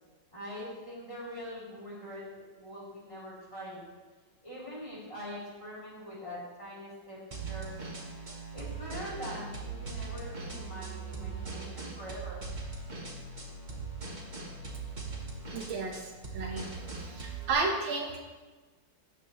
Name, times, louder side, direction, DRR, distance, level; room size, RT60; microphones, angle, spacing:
voice 1, 0.3-3.9 4.4-7.2 7.5-7.8 8.5-12.4, equal, 15° left, -8 dB, 3.2 m, -43 dB
sound 1, 7.3-17.5, right 4 dB, 30° right, 1.0 m, -40 dB
voice 2, 15.5-16.6 16.9-18.2, right 3 dB, 80° right, 2 dB, 1.8 m, -33 dB
12.5 x 7.5 x 3.0 m, 1.3 s
omnidirectional pair, 2.1 m